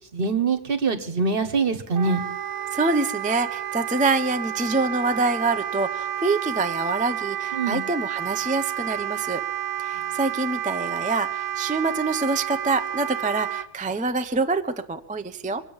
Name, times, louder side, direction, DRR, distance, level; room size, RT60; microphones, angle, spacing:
voice 1, 0.1-2.2 7.5-7.8, right 4 dB, 50° right, 8 dB, 1.3 m, -24 dB
Wind instrument woodwind instrument, 1.9-13.7, right 10 dB, 70° right, 1.1 m, -30 dB
voice 2, 2.7-9.4 9.8-15.6, right 3 dB, 15° right, 7 dB, 0.3 m, -26 dB
23.5 x 8.2 x 7.2 m, 0.78 s
omnidirectional pair, 1.3 m